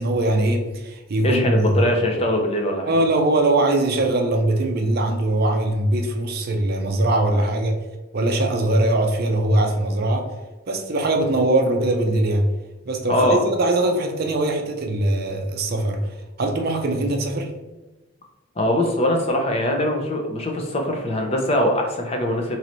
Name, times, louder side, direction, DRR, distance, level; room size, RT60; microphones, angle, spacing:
voice 1, 0.0-1.8 2.9-7.8 8.1-10.3 10.7-12.5 12.8-17.5, right 1 dB, 45° right, 3 dB, 0.5 m, -21 dB
voice 2, 1.2-3.0 7.3-7.5 13.1-13.4 18.6-22.6, left 1 dB, 30° left, 2 dB, 0.5 m, -22 dB
3.9 x 3.0 x 3.0 m, 1.1 s
head